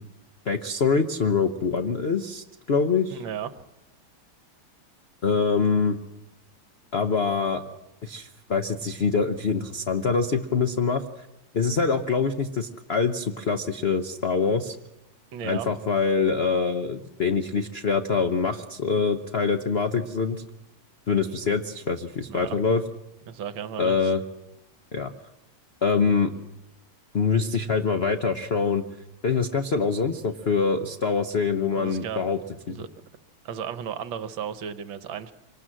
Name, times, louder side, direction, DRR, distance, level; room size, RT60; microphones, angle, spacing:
voice 1, 0.5-3.2 5.2-6.0 6.9-7.6 8.0-11.0 11.5-14.8 15.4-20.4 21.1-22.8 23.8-24.2 24.9-25.1 25.8-26.3 27.1-28.8 29.2-32.4 32.7-32.8, left 5 dB, 85° left, 7 dB, 0.5 m, -24 dB
voice 2, 3.1-3.5 15.3-15.7 22.3-22.6 23.3-24.1 31.8-32.3 32.7-32.9 33.4-35.3, right 8 dB, 65° right, 11 dB, 1.7 m, -34 dB
25.0 x 19.0 x 7.5 m, 0.95 s
omnidirectional pair, 2.4 m